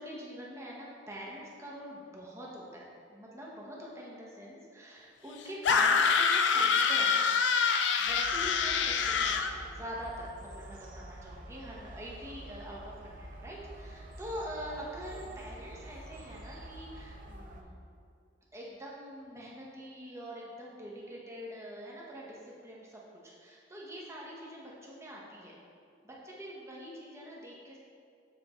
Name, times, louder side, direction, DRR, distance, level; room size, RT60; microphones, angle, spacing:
voice 1, 0.0-7.2 8.0-17.8 18.5-25.5 26.0-27.8, equal, 15° right, -4 dB, 1.0 m, -44 dB
sound 1, 5.6-9.5, left 5 dB, 70° left, 0.4 m, -26 dB
sound 2, 8.1-17.6, right 1 dB, 45° right, 0.5 m, -47 dB
7.5 x 4.6 x 3.0 m, 2.3 s
head